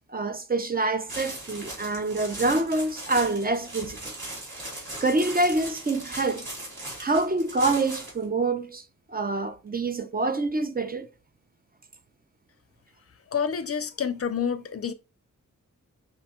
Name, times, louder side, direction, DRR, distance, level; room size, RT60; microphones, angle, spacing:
voice 1, 0.1-4.0 5.0-6.5 7.0-8.8 9.1-11.1, right 2 dB, 30° right, 0.4 m, -26 dB
sound 1, 1.1-8.2, right 1 dB, 75° right, 2.7 m, -38 dB
voice 2, 13.3-14.9, left 7 dB, 50° left, 0.4 m, -28 dB
5.4 x 2.2 x 4.2 m
wide cardioid pair, 140°, 31 cm